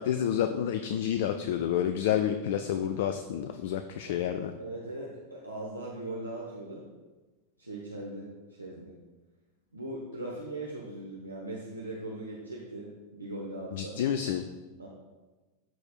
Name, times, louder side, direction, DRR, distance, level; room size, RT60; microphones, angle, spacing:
voice 1, 0.0-4.5 13.7-14.4, left 9 dB, 55° left, 8 dB, 0.3 m, -29 dB
voice 2, 4.6-6.9 7.6-8.9 9.7-14.0 14.8-14.9, right 1 dB, 85° right, -3 dB, 0.8 m, -39 dB
12.5 x 4.3 x 2.3 m, 1.2 s
figure-of-eight pair, 90°, 0 cm